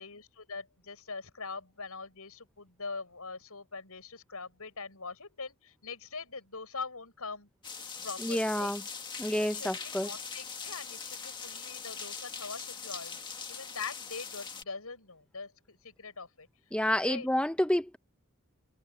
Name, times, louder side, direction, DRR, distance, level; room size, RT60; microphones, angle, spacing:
voice 1, 0.0-7.5 8.0-8.7 9.5-16.5 17.1-17.3, left 4 dB, 85° left, 6.2 m, -43 dB
sound 1, 7.6-14.6, left 6 dB, 20° left, 1.9 m, -41 dB
voice 2, 8.2-8.8 9.2-10.2 16.7-18.0, left 1 dB, 5° left, 0.7 m, -29 dB
head